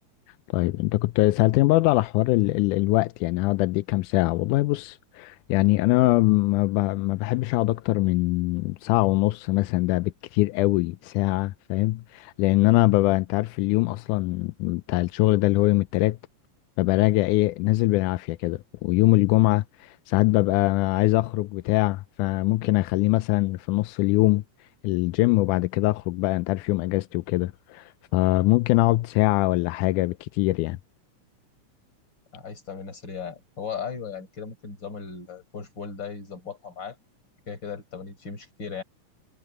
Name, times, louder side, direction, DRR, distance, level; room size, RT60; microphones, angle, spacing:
voice 1, 0.5-16.2 16.8-24.4 24.8-30.8, left 19 dB, 90° left, 2.1 m, -22 dB
voice 2, 32.3-37.0 37.5-38.8, left 6 dB, 35° left, 5.1 m, -37 dB
omnidirectional pair, 3.5 m